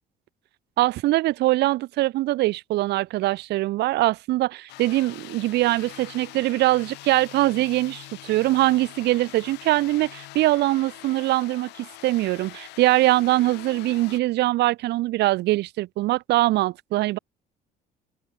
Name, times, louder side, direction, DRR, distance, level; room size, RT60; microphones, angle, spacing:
voice 1, 0.8-17.2, right 17 dB, 80° right, 5.5 m, -22 dB
sound 1, 4.7-14.2, left 20 dB, 90° left, 7.0 m, -43 dB
cardioid pair, 110°, 17 cm